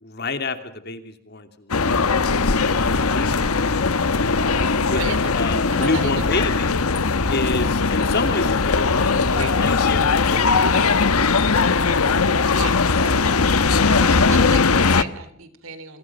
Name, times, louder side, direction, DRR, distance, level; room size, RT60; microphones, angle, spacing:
voice 1, 0.0-2.4 2.7-4.2 4.9-6.8 7.3-12.1, left 2 dB, 50° left, 8 dB, 2.8 m, -30 dB
sound 1, 1.7-15.0, left 4 dB, 85° left, 1.1 m, -19 dB
voice 2, 4.8-5.3 5.7-6.7 7.4-7.5 9.3-9.6 12.4-13.2 13.8-16.0, right 4 dB, 70° right, 13 dB, 3.4 m, -34 dB
28.5 x 27.0 x 6.2 m, 0.66 s
head